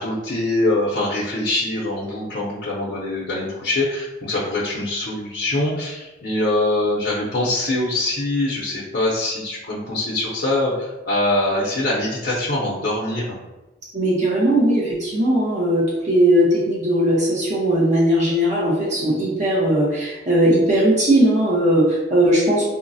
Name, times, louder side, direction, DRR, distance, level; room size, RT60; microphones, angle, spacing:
voice 1, 0.0-13.4, left 2 dB, 60° left, -7 dB, 0.6 m, -23 dB
voice 2, 13.9-22.7, right 1 dB, 40° right, -7 dB, 0.7 m, -18 dB
3.8 x 2.0 x 2.6 m, 1.1 s
head